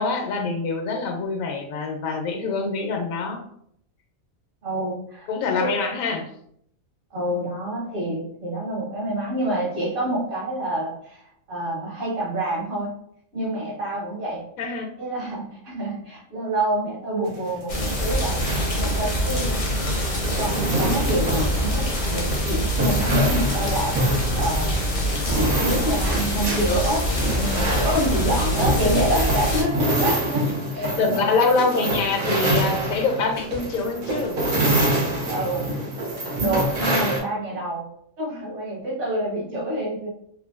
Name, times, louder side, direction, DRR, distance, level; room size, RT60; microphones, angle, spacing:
voice 1, 0.0-3.4 5.3-6.2 14.6-14.9 28.9-29.0 29.5-29.6 31.0-34.4, left 4 dB, 85° left, 3 dB, 1.0 m, -25 dB
voice 2, 4.6-5.3 5.6-5.7 7.1-11.2 11.5-12.9 13.3-14.4 15.0-18.4 18.7-19.5 20.4-24.8 25.3-27.1 27.3-31.3 35.3-35.9 36.4-37.9 38.2-40.1, right 1 dB, 65° right, -5 dB, 1.5 m, -27 dB
sound 1, 17.3-37.2, right 1 dB, 85° right, 1.3 m, -26 dB
sound 2, 17.7-29.6, equal, 55° left, 0.4 m, -25 dB
3.3 x 2.2 x 2.3 m, 0.69 s
omnidirectional pair, 1.4 m